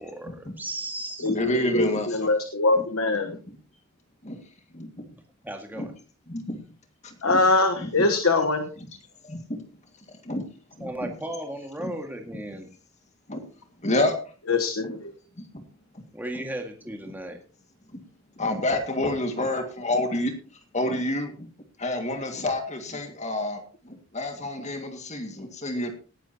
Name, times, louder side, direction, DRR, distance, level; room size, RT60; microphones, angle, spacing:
voice 1, 0.0-1.3 5.4-5.9 10.8-12.7 16.1-17.4, right 1 dB, 10° right, 3 dB, 1.9 m, -35 dB
voice 2, 1.2-2.3 2.7-2.8 3.2-3.6 4.2-4.4 4.7-5.1 5.8-5.9 6.3-6.7 7.0-7.4 7.8-8.1 8.8-8.9 9.2-9.7 10.1-10.5 10.8-11.1 11.8-11.9 13.3-13.4 13.8-14.1 14.8-14.9 15.4-15.6 15.9-16.0 16.3-16.4 17.9-18.0 18.4-20.3 20.7-21.5 21.8-25.9, left 1 dB, 35° left, 5 dB, 2.1 m, -29 dB
voice 3, 1.7-3.3 7.2-8.7 14.5-15.1, left 3 dB, 80° left, 7 dB, 1.2 m, -23 dB
18.5 x 11.0 x 2.9 m, 0.37 s
head